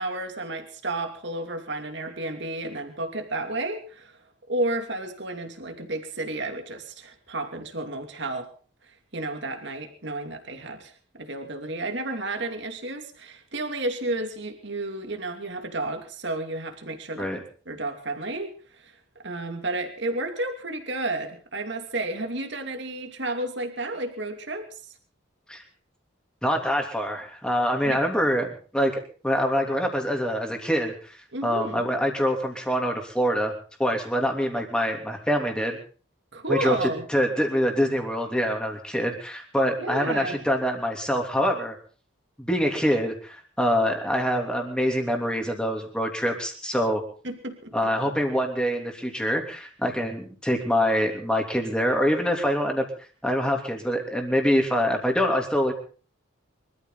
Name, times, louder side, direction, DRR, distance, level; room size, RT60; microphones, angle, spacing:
voice 1, 0.0-4.2 4.5-8.5 9.1-17.3 17.7-19.0 19.2-24.7 27.8-28.0 31.3-31.8 36.3-37.0 39.8-40.4 47.2-47.9, right 2 dB, 55° right, 5 dB, 2.7 m, -32 dB
voice 2, 26.4-31.2 31.4-33.5 33.8-35.8 36.5-41.7 42.4-47.0 47.7-52.9 53.2-55.7, equal, 5° left, 3 dB, 3.1 m, -25 dB
24.5 x 14.0 x 4.0 m, 0.40 s
head